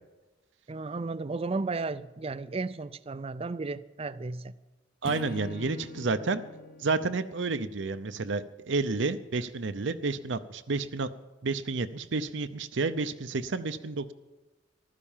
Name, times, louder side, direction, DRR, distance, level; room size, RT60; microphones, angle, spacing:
voice 1, 0.7-4.5, right 3 dB, 30° right, 0.5 m, -34 dB
Acoustic guitar / Strum, 5.0-8.4, left 3 dB, 50° left, 0.8 m, -43 dB
voice 2, 5.0-6.4 6.8-11.1 11.4-14.1, right 3 dB, 65° right, 0.7 m, -30 dB
15.0 x 12.5 x 7.3 m
head